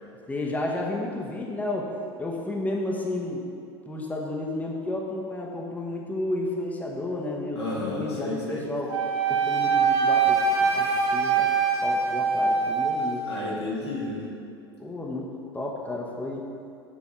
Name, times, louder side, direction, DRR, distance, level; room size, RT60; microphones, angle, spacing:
voice 1, 0.3-1.9 2.2-3.4 3.9-8.9 9.3-11.5 11.8-13.3 14.8-16.4, left 2 dB, 10° left, -2 dB, 1.0 m, -32 dB
voice 2, 7.6-8.6 13.2-14.3, left 2 dB, 80° left, -6 dB, 1.8 m, -32 dB
Wind instrument woodwind instrument, 8.9-13.2, right 5 dB, 70° right, 0.9 m, -23 dB
7.4 x 4.0 x 5.3 m, 2.5 s
figure-of-eight pair, 75°, 14 cm